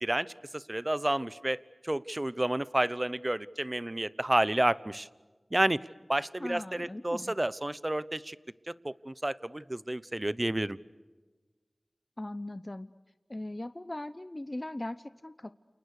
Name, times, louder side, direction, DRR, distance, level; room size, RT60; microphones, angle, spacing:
voice 1, 0.0-5.1 5.5-8.4 8.7-10.8, right 1 dB, 30° right, 18 dB, 0.9 m, -30 dB
voice 2, 6.4-7.3 12.2-12.9 13.3-15.5, left 1 dB, 30° left, 14 dB, 0.8 m, -39 dB
29.5 x 29.0 x 6.6 m, 1.3 s
wide cardioid pair, 50°, 0 cm